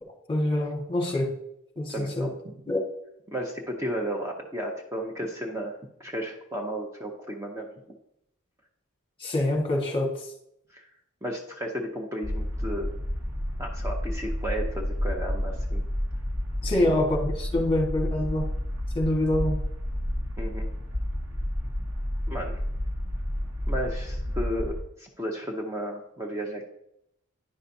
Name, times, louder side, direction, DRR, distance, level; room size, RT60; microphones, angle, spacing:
voice 1, 0.0-1.3 1.8-2.3 2.7-2.8 9.2-10.2 16.6-18.5 18.9-19.6, left 1 dB, 25° left, 1 dB, 1.2 m, -26 dB
voice 2, 1.9-2.5 3.3-7.7 10.7-10.9 11.2-12.9 13.6-15.8 16.8-17.0 20.4-20.7 22.3-22.6 23.7-26.7, equal, 15° right, 0 dB, 0.6 m, -34 dB
sound 1, 12.2-24.8, equal, 65° right, 1.7 m, -30 dB
10.0 x 5.5 x 2.7 m, 0.77 s
head